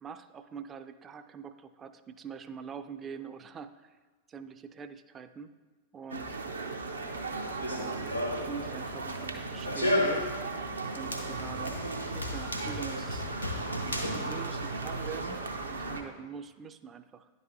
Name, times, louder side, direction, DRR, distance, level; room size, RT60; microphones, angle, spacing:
voice 1, 0.0-4.0 4.3-5.5 5.9-6.3 7.7-10.3 10.8-13.3 14.3-17.3, right 6 dB, 25° right, 10 dB, 0.3 m, -44 dB
sound 1, 6.1-16.0, right 3 dB, 75° right, 0.5 m, -37 dB
Run, 7.4-15.1, left 1 dB, 90° left, 0.8 m, -34 dB
10.5 x 4.1 x 2.6 m, 1.3 s
figure-of-eight pair, 90°, 0 cm